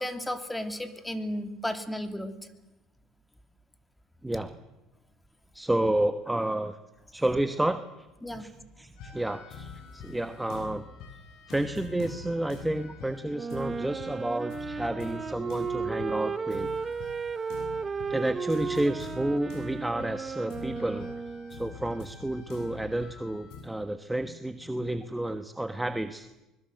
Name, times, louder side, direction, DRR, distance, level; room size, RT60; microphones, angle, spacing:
voice 1, 0.0-2.3 8.2-8.5 24.2-24.3, left 1 dB, 10° left, 8 dB, 3.1 m, -34 dB
voice 2, 4.2-4.5 5.5-6.8 7.1-7.8 8.4-8.5 8.8-10.8 11.5-16.7 18.1-21.1 21.5-26.3, right 1 dB, 10° right, 10 dB, 1.3 m, -30 dB
sound 1, 9.0-23.6, left 5 dB, 70° left, 7.3 m, -45 dB
Wind instrument woodwind instrument, 13.3-21.7, right 5 dB, 30° right, 0.8 m, -34 dB
24.5 x 22.0 x 8.0 m, 1.0 s
supercardioid pair, 80°, 0 cm